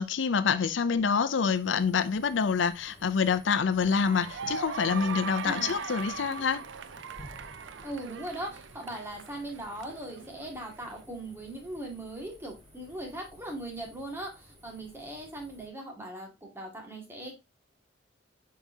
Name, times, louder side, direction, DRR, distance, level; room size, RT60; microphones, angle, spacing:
voice 1, 0.0-6.6, left 6 dB, 85° left, 0.5 m, -27 dB
sound 1, 1.2-15.7, equal, 35° right, 3.3 m, -55 dB
sound 2, 3.9-11.0, right 6 dB, 90° right, 0.5 m, -40 dB
voice 2, 5.4-5.8 7.8-17.4, right 1 dB, 15° right, 2.0 m, -39 dB
7.1 x 4.8 x 2.7 m
head